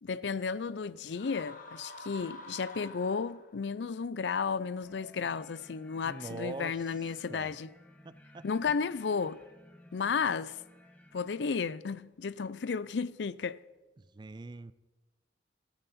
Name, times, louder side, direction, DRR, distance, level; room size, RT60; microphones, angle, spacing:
voice 1, 0.0-7.7 8.4-9.4 9.9-10.6 11.1-13.6, left 5 dB, 70° left, 0.5 m, -33 dB
sound 1, 1.1-3.7, left 1 dB, 50° left, 1.6 m, -47 dB
sound 2, 4.8-11.5, left 1 dB, 10° left, 1.3 m, -58 dB
voice 2, 6.0-6.9 7.3-7.5 8.0-8.7 14.0-14.7, right 3 dB, 25° right, 0.4 m, -43 dB
15.5 x 14.5 x 4.2 m
head